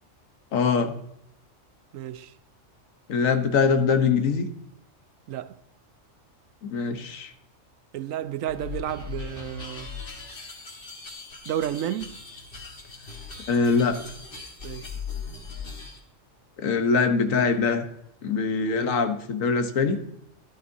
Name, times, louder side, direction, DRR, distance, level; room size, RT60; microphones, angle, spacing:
voice 1, 0.5-0.9 3.1-4.5 6.7-7.3 13.5-14.0 16.6-17.9 18.2-20.0, left 5 dB, 80° left, 1.4 m, -23 dB
voice 2, 1.9-2.3 5.3-5.5 7.9-9.9 11.5-12.2 14.6-14.9, right 11 dB, 85° right, 1.0 m, -31 dB
sound 1, 8.5-16.0, left 5 dB, 45° left, 1.7 m, -39 dB
13.0 x 12.0 x 2.7 m
omnidirectional pair, 1.4 m